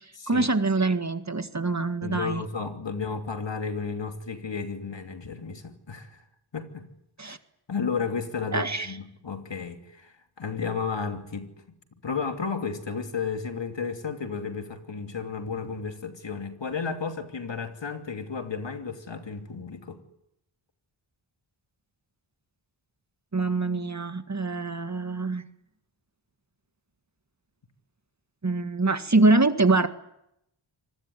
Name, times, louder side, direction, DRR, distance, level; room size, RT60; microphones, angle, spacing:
voice 1, 0.0-2.4 7.2-7.4 8.5-8.9 23.3-25.4 28.4-29.9, right 3 dB, 35° right, 1.8 m, -24 dB
voice 2, 2.0-6.2 6.5-6.8 7.2-7.3 7.7-11.5 12.0-20.0, left 5 dB, 60° left, 2.8 m, -33 dB
25.0 x 20.5 x 9.7 m
cardioid pair, 45°, 49 cm